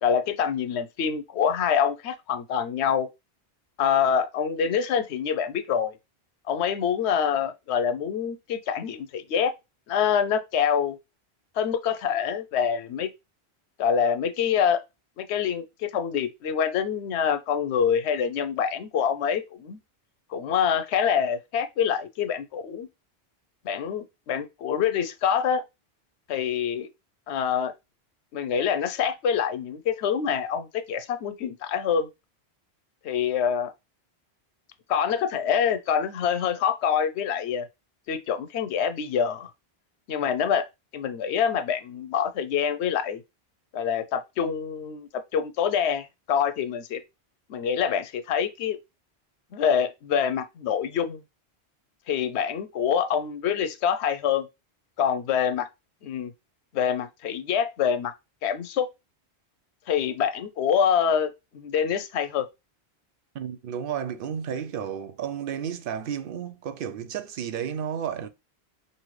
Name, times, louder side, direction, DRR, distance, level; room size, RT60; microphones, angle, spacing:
voice 1, 0.0-3.1 3.8-6.0 6.5-9.5 9.9-11.0 11.6-13.1 13.8-14.8 15.2-19.8 20.3-22.9 23.6-25.6 26.3-26.9 27.3-27.7 28.3-32.1 33.0-33.7 34.9-37.7 38.1-39.5 40.1-40.7 40.9-43.2 43.7-47.0 47.5-48.8 49.5-51.2 52.1-54.5 55.0-55.7 56.0-56.3 56.7-58.1 58.4-58.9 59.9-62.5, left 7 dB, 90° left, 0.9 m, -26 dB
voice 2, 63.3-68.3, right 8 dB, 65° right, 0.7 m, -32 dB
5.5 x 2.6 x 3.1 m
omnidirectional pair, 1.1 m